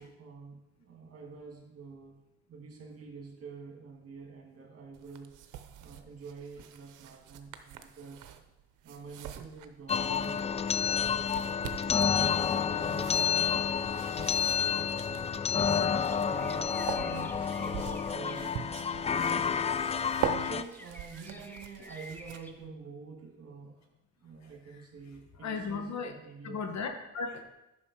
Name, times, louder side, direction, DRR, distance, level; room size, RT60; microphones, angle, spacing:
voice 1, 0.0-2.2 2.5-5.5 5.8-8.3 8.8-14.1 14.4-15.4 16.1-19.7 20.2-23.8 24.2-26.6, right 5 dB, 50° right, 1 dB, 2.2 m, -47 dB
sound 1, 4.9-22.7, right 10 dB, 85° right, 0.8 m, -43 dB
sound 2, 9.9-20.6, left 7 dB, 20° left, 0.3 m, -29 dB
voice 2, 15.5-16.2 25.4-26.1 26.4-27.5, left 5 dB, 65° left, 6 dB, 1.3 m, -37 dB
sound 3, 15.5-22.5, left 1 dB, 5° left, 0.9 m, -52 dB
9.7 x 6.2 x 4.8 m, 0.93 s
cardioid pair, 90°, 30 cm